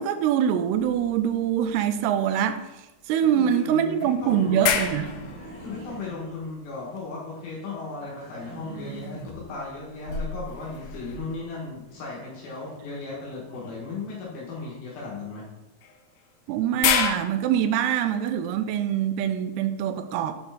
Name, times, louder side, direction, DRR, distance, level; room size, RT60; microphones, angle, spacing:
voice 1, 0.0-2.6 3.1-5.1 16.5-20.3, right 9 dB, 85° right, 9 dB, 2.5 m, -24 dB
sound 1, 0.7-2.0 2.4-2.5 3.5-7.0 8.7-11.8 13.6-13.7 15.8-17.1, left 7 dB, 90° left, 2.7 m, -31 dB
voice 2, 3.2-4.6 5.6-15.5, left 3 dB, 70° left, -5 dB, 2.9 m, -36 dB
sound 2, 4.2-6.9 7.2-9.5 10.0-12.0, right 2 dB, 55° right, 2.6 m, -43 dB
7.5 x 4.4 x 3.8 m, 0.99 s
omnidirectional pair, 4.7 m